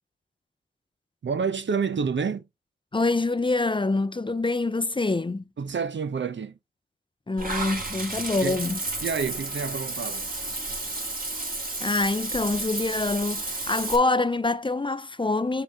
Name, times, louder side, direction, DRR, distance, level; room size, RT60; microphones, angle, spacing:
voice 1, 1.2-2.5 5.6-6.6 8.4-8.6 9.0-10.3, right 5 dB, 65° right, 0.7 m, -28 dB
voice 2, 2.9-5.4 7.3-8.8 11.8-15.6, left 3 dB, 25° left, 0.6 m, -25 dB
Water / Bathtub (filling or washing), 7.4-14.0, right 2 dB, 45° right, 2.5 m, -32 dB
5.9 x 5.7 x 3.9 m
cardioid pair, 45°, 20 cm